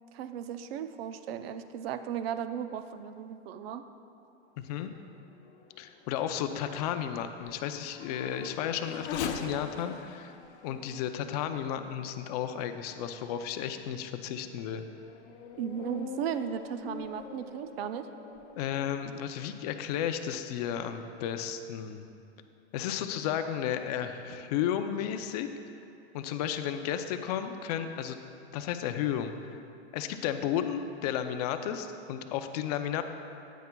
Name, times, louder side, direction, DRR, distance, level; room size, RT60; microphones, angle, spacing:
voice 1, 0.1-3.8 15.6-18.1, right 9 dB, 60° right, 10 dB, 0.6 m, -36 dB
voice 2, 4.6-4.9 5.8-10.3 10.6-14.9 18.6-22.1 22.7-25.5 26.1-28.2 28.5-29.6 29.9-33.0, left 9 dB, 35° left, 8 dB, 0.4 m, -33 dB
Race car auto racing / Accelerating revving vroom, 4.9-12.8 13.5-13.6 14.2-18.9, left 6 dB, 75° left, 0.9 m, -44 dB
15.0 x 9.3 x 2.2 m, 2.7 s
supercardioid pair, 160°, 35 cm